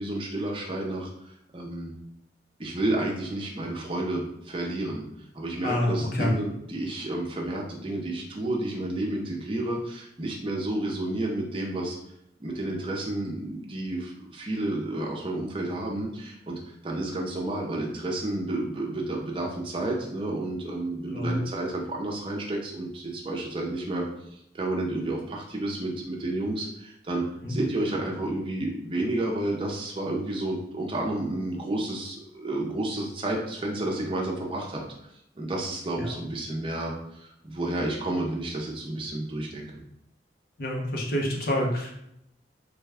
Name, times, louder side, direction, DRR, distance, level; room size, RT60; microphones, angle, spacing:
voice 1, 0.0-1.9 2.6-5.1 5.3-12.0 12.4-24.1 24.5-27.2 27.5-34.8 35.4-39.7, right 1 dB, 30° right, -1 dB, 0.6 m, -31 dB
voice 2, 5.6-6.3 21.1-21.4 27.4-27.6 36.0-36.1 40.6-41.9, left 1 dB, 50° left, -1 dB, 0.7 m, -27 dB
3.3 x 2.3 x 3.3 m, 0.78 s
head